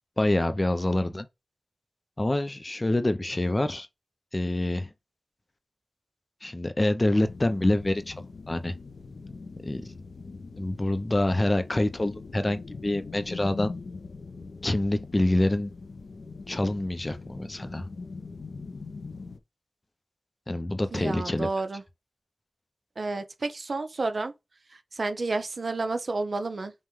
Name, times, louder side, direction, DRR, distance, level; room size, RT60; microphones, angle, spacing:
voice 1, 0.2-1.3 2.2-3.9 4.3-4.9 6.4-8.2 8.5-8.7 9.6-9.9 10.6-13.7 14.6-15.7 16.5-17.9 20.5-21.5, left 1 dB, 30° left, 0.5 m, -26 dB
sound 1, 7.2-19.4, left 4 dB, 90° left, 0.5 m, -42 dB
voice 2, 20.9-21.8 23.0-24.3 24.7-26.7, right 3 dB, 65° right, 0.6 m, -30 dB
5.4 x 2.2 x 3.1 m
wide cardioid pair, 75°, 0 cm